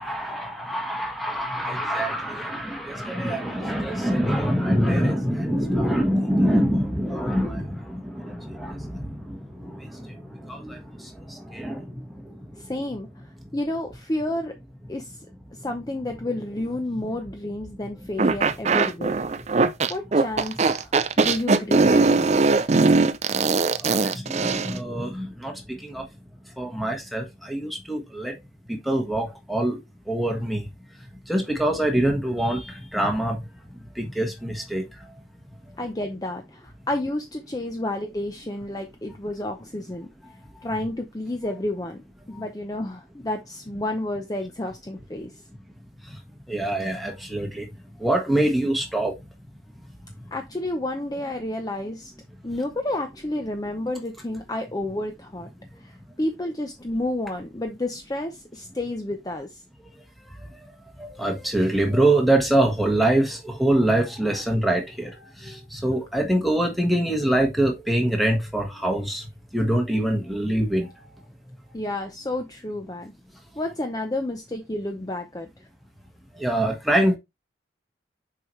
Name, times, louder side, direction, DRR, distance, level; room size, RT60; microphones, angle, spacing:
voice 1, 0.0-12.4 23.4-23.5 23.8-26.1 26.6-28.3 28.7-29.8 30.1-30.7 31.3-33.4 33.9-34.8 42.3-42.4 46.5-47.7 48.0-49.1 61.0-65.1 65.4-69.3 69.5-70.9 76.4-77.2, right 1 dB, ahead, 1.4 m, -25 dB
voice 2, 12.6-14.5 14.9-15.2 15.6-19.2 19.9-22.5 35.8-40.1 40.6-42.0 42.3-45.3 50.3-52.1 52.4-55.5 55.8-59.6 71.7-73.1 73.6-75.5, left 1 dB, 20° left, 0.6 m, -30 dB
sound 1, 18.2-24.8, right 3 dB, 40° right, 0.4 m, -20 dB
6.8 x 4.8 x 3.1 m
head